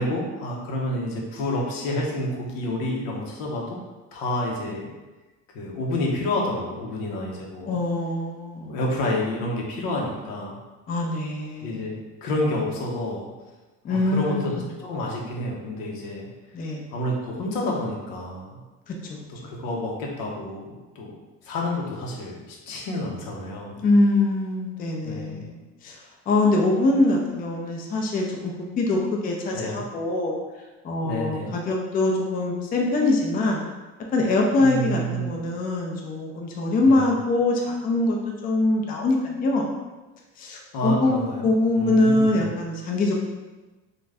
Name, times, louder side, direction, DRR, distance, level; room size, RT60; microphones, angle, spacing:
voice 1, 0.0-3.8 4.1-4.9 5.5-7.7 8.7-10.6 11.6-11.9 12.2-13.3 13.9-16.3 16.9-18.6 19.3-21.2 21.4-23.8 25.0-25.4 29.5-29.8 31.0-31.5 34.6-35.3 36.8-37.1 40.7-41.5 41.7-42.5, left 1 dB, 85° left, -2 dB, 0.8 m, -29 dB
voice 2, 7.7-8.8 10.9-11.8 13.8-14.6 16.5-16.8 18.9-19.0 19.4-19.6 23.8-26.0 26.3-30.4 30.8-33.6 34.1-38.2 38.4-39.7 40.4-43.1, left 2 dB, 25° left, 0 dB, 0.4 m, -23 dB
2.5 x 2.2 x 3.3 m, 1.2 s
cardioid pair, 125°, 34 cm